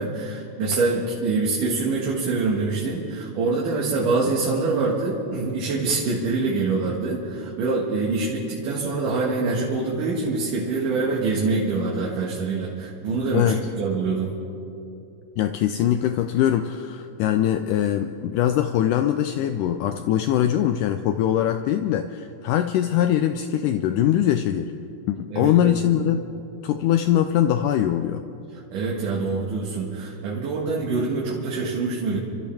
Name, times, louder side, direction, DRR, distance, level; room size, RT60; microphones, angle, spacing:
voice 1, 0.0-14.3 25.3-25.8 28.7-32.2, right 3 dB, 65° right, -5 dB, 3.1 m, -25 dB
voice 2, 15.4-24.7 25.1-26.2 26.6-28.2, left 11 dB, 90° left, 8 dB, 1.8 m, -22 dB
29.0 x 13.5 x 3.5 m, 2.7 s
omnidirectional pair, 4.3 m